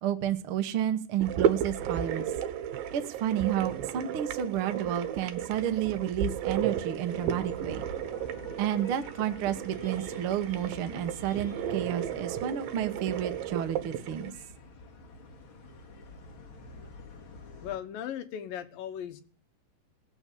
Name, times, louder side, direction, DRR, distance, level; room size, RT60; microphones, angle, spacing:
voice 1, 0.0-2.2 2.9-7.8 8.6-14.3, right 10 dB, 65° right, 8 dB, 1.4 m, -31 dB
sound 1, 1.2-14.3, right 9 dB, 80° right, 2.8 m, -33 dB
sound 2, 7.1-17.8, left 3 dB, 40° left, 2.4 m, -48 dB
voice 2, 17.6-19.2, left 9 dB, 75° left, 9 dB, 2.8 m, -37 dB
18.0 x 7.4 x 8.5 m, 0.40 s
omnidirectional pair, 4.2 m